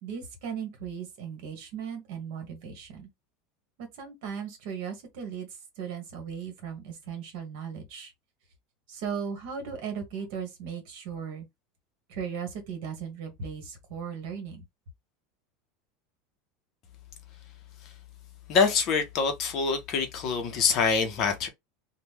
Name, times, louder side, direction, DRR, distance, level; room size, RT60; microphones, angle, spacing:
voice 1, 0.0-3.1 3.8-8.1 8.9-11.4 12.1-14.6, right 7 dB, 55° right, 1.3 m, -37 dB
voice 2, 18.5-21.5, left 5 dB, 30° left, 0.6 m, -25 dB
3.0 x 2.1 x 3.4 m
supercardioid pair, 180°, 0 cm